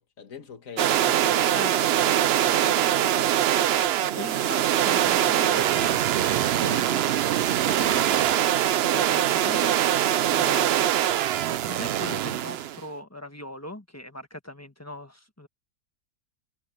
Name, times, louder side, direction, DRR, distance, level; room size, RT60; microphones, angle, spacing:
voice 1, 0.0-1.7 2.1-3.6, left 5 dB, 55° left, 2.3 m, -43 dB
sound 1, 0.8-12.8, right 11 dB, 70° right, 0.6 m, -23 dB
voice 2, 4.1-7.0 7.7-9.7 10.3-15.5, left 1 dB, 10° left, 1.2 m, -40 dB
omnidirectional pair, 1.6 m